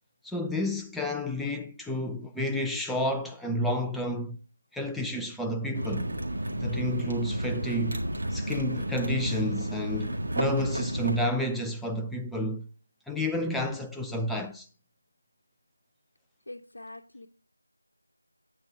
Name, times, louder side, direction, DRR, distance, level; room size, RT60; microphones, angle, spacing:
voice 1, 0.2-4.4 4.7-6.1 6.6-8.0 8.3-12.7 13.1-14.7, left 1 dB, ahead, 0.3 m, -30 dB
sound 1, 5.7-11.2, right 1 dB, 40° right, 1.7 m, -31 dB
voice 2, 16.5-17.3, left 2 dB, 65° left, 0.9 m, -44 dB
8.7 x 7.6 x 3.4 m
figure-of-eight pair, 170°, 0 cm